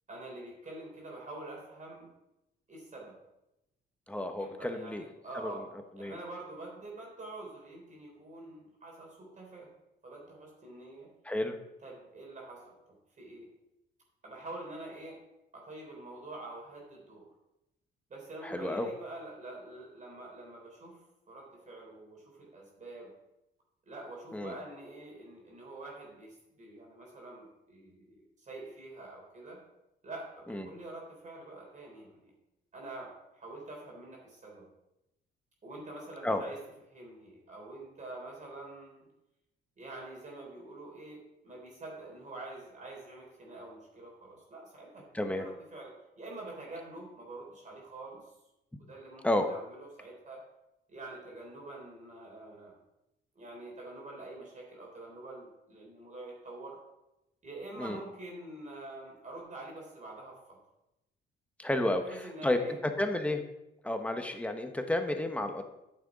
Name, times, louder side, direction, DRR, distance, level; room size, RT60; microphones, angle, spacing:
voice 1, 0.1-2.1 2.7-3.2 4.4-5.7 6.0-9.7 10.0-11.1 11.8-12.7 13.2-13.5 14.2-15.2 15.5-17.3 18.1-21.0 21.3-23.1 23.9-29.6 30.0-32.3 32.7-34.7 35.6-36.6 36.9-39.1 39.8-48.3 48.8-50.4 50.9-52.7 53.4-56.8 57.4-60.6 61.8-62.8, right 2 dB, 40° right, -2 dB, 3.6 m, -46 dB
voice 2, 4.1-5.0 5.4-5.5 6.0-6.1 11.2-11.6 18.4-18.9 24.3-24.5 30.5-30.7 36.2-36.4 45.1-45.5 49.2-49.5 57.8-58.0 61.6-62.0 62.4-63.4 63.8-65.6, left 1 dB, 5° left, 6 dB, 1.1 m, -31 dB
9.2 x 6.6 x 4.9 m, 0.90 s
cardioid pair, 90°, 20 cm